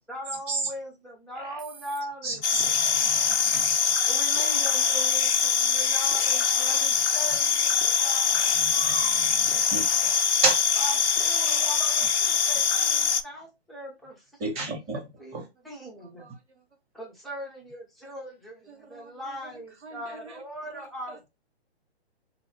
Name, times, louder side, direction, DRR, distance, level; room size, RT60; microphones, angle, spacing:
voice 1, 0.1-2.7 4.0-8.4 10.8-14.3 14.9-15.4 15.6-16.3 16.9-21.3, right 1 dB, ahead, 0.6 m, -40 dB
sound 1, 1.4-2.0 2.6-3.8 4.4-5.6 6.1-7.3 7.8-9.0 9.5-10.7 11.2-11.8, right 5 dB, 40° right, 1.2 m, -44 dB
voice 2, 2.2-3.7 6.9-7.0 8.4-9.8 10.4-10.6 14.4-15.0 15.3-15.4, right 3 dB, 20° right, 1.2 m, -31 dB
sound 2, 2.4-13.2, left 7 dB, 85° left, 0.6 m, -23 dB
voice 3, 15.7-16.6 18.7-20.4 20.7-21.3, right 3 dB, 90° right, 1.4 m, -49 dB
3.6 x 2.7 x 3.2 m
hypercardioid pair, 135°, 33 cm